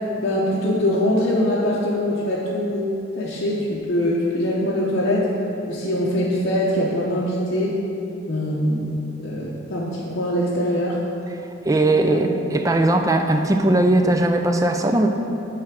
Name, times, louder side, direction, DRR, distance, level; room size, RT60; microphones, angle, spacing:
voice 1, 0.2-5.3 5.7-7.8 8.3-11.0 11.8-12.3, left 1 dB, 55° left, -7 dB, 0.8 m, -23 dB
voice 2, 11.7-15.1, right 2 dB, 15° right, 5 dB, 0.4 m, -19 dB
9.3 x 3.3 x 6.0 m, 2.9 s
head